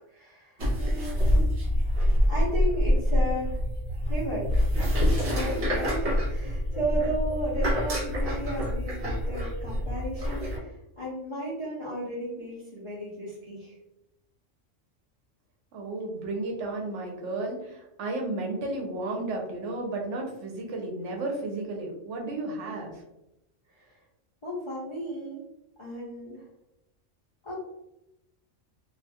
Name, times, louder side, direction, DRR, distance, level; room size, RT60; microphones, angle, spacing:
voice 1, 0.1-1.5 2.3-3.6 4.1-4.5 5.2-13.8 23.7-24.0 24.4-25.4 25.8-26.5 27.4-27.6, right 1 dB, 45° left, -7 dB, 0.4 m, -34 dB
sound 1, 0.6-10.6, equal, 55° right, 1.0 m, -26 dB
voice 2, 15.7-23.0, right 2 dB, 75° right, 1 dB, 0.9 m, -33 dB
2.4 x 2.3 x 2.7 m, 0.89 s
omnidirectional pair, 1.3 m